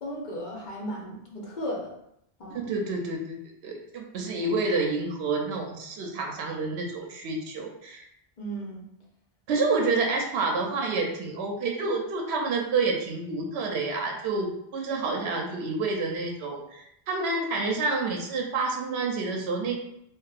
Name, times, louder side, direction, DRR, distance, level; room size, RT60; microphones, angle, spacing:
voice 1, 0.0-1.9 2.4-2.7 8.4-8.9, equal, 50° left, -2 dB, 0.7 m, -35 dB
voice 2, 2.5-3.4 3.6-8.0 9.5-19.8, right 3 dB, 85° right, 1 dB, 0.8 m, -28 dB
2.7 x 2.2 x 2.4 m, 0.77 s
omnidirectional pair, 1.1 m